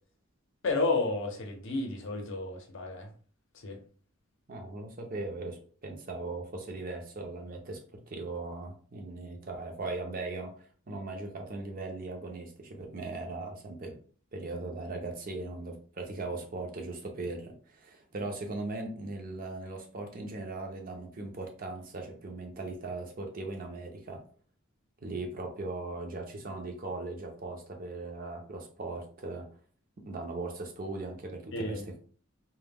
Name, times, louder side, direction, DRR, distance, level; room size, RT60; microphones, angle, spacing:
voice 1, 0.6-3.1 3.6-3.8 31.5-31.9, left 3 dB, 65° left, 0.6 m, -31 dB
voice 2, 4.5-13.9 14.3-24.2 25.0-29.5 30.0-32.0, right 2 dB, 40° right, 0.5 m, -39 dB
2.1 x 2.1 x 3.3 m
head